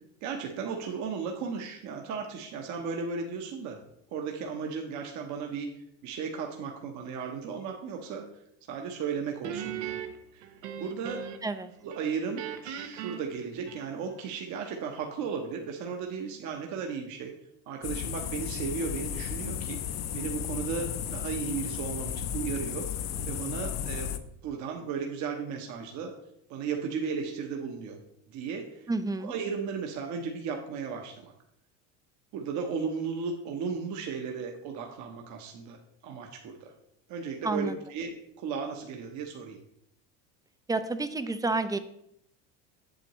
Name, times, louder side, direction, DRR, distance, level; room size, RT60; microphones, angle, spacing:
voice 1, 0.2-3.8 4.1-5.7 6.0-8.3 8.7-10.0 10.3-11.2 11.8-17.3 17.7-22.9 23.3-24.1 24.4-26.1 26.5-28.0 28.3-28.9 29.2-31.3 32.3-35.8 36.0-36.7 37.1-39.6, right 5 dB, 55° right, 2 dB, 1.1 m, -35 dB
Guitar, 9.4-11.6 11.9-14.2, right 9 dB, 90° right, 0.9 m, -39 dB
sound 1, 17.8-24.2, left 9 dB, 50° left, 0.6 m, -34 dB
voice 2, 28.9-29.3 37.4-37.8 40.7-41.8, right 3 dB, 10° right, 11 dB, 0.4 m, -29 dB
7.6 x 7.6 x 3.1 m, 0.76 s
supercardioid pair, 110°, 33 cm